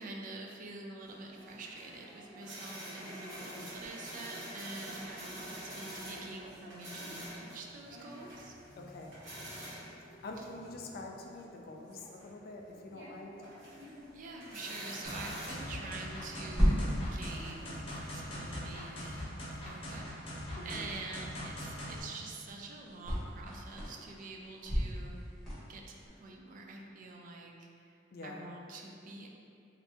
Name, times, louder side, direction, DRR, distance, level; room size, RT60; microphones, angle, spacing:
voice 1, 0.0-8.5 14.1-25.4 25.7-25.9 26.2-29.3, right 3 dB, 45° right, 1 dB, 0.3 m, -46 dB
sound 1, 1.0-18.9, equal, 75° right, 1.1 m, -48 dB
voice 2, 8.8-9.2 10.2-13.4 20.5-20.9 28.1-28.4, left 2 dB, 50° left, 1 dB, 0.3 m, -46 dB
sound 2, 14.0-26.1, equal, ahead, 0.9 m, -38 dB
sound 3, 15.0-22.0, equal, 30° left, 0.8 m, -42 dB
2.7 x 2.5 x 3.3 m, 2.6 s
head